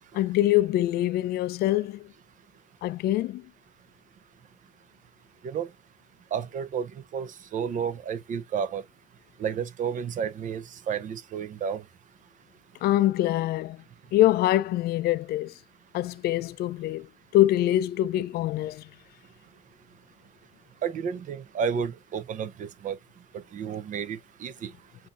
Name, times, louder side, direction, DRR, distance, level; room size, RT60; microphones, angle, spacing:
voice 1, 0.1-2.1 2.8-3.4 12.8-13.8 14.1-15.5 15.9-17.1 17.3-18.9, left 14 dB, 65° left, 0.4 m, -24 dB
voice 2, 6.3-8.8 9.4-11.8 20.8-23.0 23.5-24.7, right 7 dB, 50° right, 0.6 m, -31 dB
7.6 x 2.8 x 2.4 m
cardioid pair, 110°, 17 cm